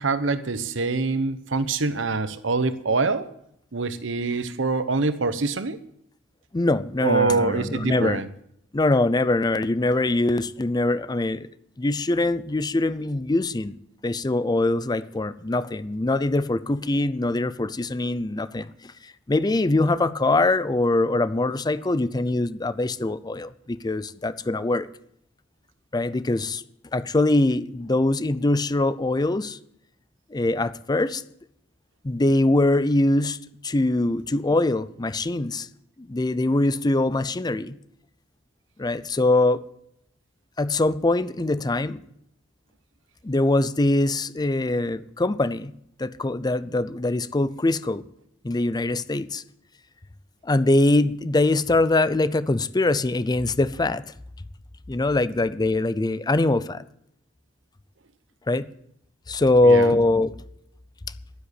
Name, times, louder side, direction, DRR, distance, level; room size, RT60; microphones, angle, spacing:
voice 1, 0.0-3.3 3.7-5.8 7.0-8.3 59.6-59.9, right 3 dB, 80° right, 13 dB, 1.0 m, -25 dB
voice 2, 6.5-8.2 8.7-11.5 11.8-13.8 14.0-24.9 25.9-26.6 26.9-29.6 30.3-31.2 32.0-33.4 33.6-35.7 36.0-37.8 38.8-39.6 40.6-42.0 43.2-45.7 46.0-48.0 48.4-49.4 50.4-54.1 54.9-56.8 58.5-58.7 59.3-60.3, left 2 dB, 20° left, 16 dB, 0.5 m, -23 dB
11.5 x 10.0 x 8.2 m, 0.75 s
head